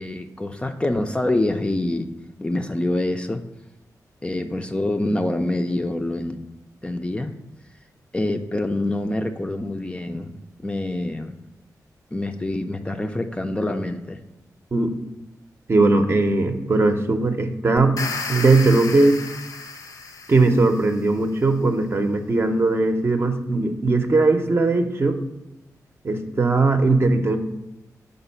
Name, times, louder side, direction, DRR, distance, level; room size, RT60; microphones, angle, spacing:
voice 1, 0.0-2.1 2.4-3.4 4.2-6.5 6.8-7.4 8.1-11.3 12.1-14.2, left 1 dB, 15° left, 6 dB, 0.4 m, -26 dB
voice 2, 15.7-18.0 18.3-19.2 20.3-25.2 26.0-27.4, right 3 dB, 40° right, 6 dB, 0.6 m, -19 dB
sound 1, 17.8-20.9, left 4 dB, 70° left, 0.6 m, -33 dB
5.2 x 4.0 x 5.6 m, 0.98 s
wide cardioid pair, 95°, 6 cm